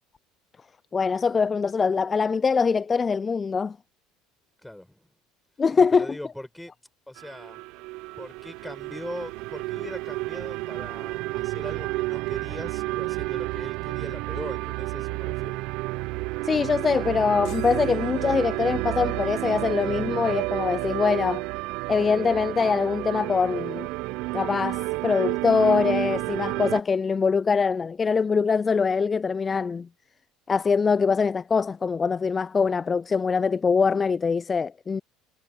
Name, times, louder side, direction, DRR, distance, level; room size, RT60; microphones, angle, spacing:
voice 1, 0.9-3.8 5.6-6.1 16.4-21.4 21.9-23.9 24.3-29.9 30.5-35.0, left 5 dB, 30° left, 0.3 m, -23 dB
voice 2, 4.6-5.1 5.7-6.7 7.1-7.6 8.2-15.7, left 1 dB, 5° left, 5.7 m, -40 dB
sound 1, 7.2-26.8, right 23 dB, 65° right, 0.7 m, -31 dB
sound 2, 17.4-19.0, left 16 dB, 60° left, 7.6 m, -53 dB
hypercardioid pair, 70°, 0 cm